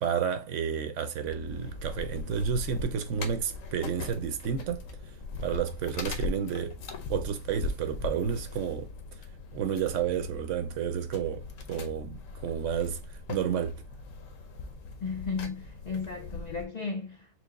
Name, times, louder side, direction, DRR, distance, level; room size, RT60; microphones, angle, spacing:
voice 1, 0.0-4.8 5.4-6.8 7.1-8.9 9.5-13.0 13.3-13.8, right 7 dB, 75° right, 1.0 m, -31 dB
sound 1, 1.2-16.7, left 3 dB, 85° left, 1.1 m, -40 dB
voice 2, 15.0-17.3, left 5 dB, 50° left, 0.5 m, -35 dB
4.5 x 2.1 x 3.9 m
omnidirectional pair, 1.3 m